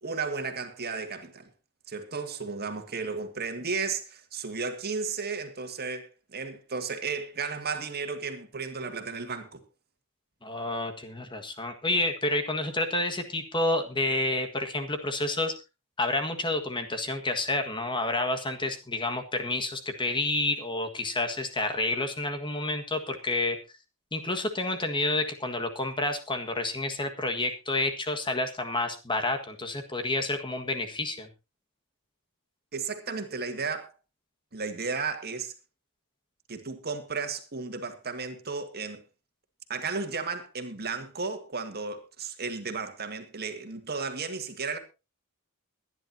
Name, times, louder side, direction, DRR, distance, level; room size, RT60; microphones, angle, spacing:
voice 1, 0.0-1.5 1.9-9.6 32.7-33.9 34.5-35.5 36.5-39.0 39.7-44.8, right 4 dB, 45° right, 2.0 m, -34 dB
voice 2, 10.4-15.5 16.0-23.6 24.1-31.3, left 2 dB, 25° left, 1.6 m, -29 dB
22.5 x 10.5 x 2.8 m
head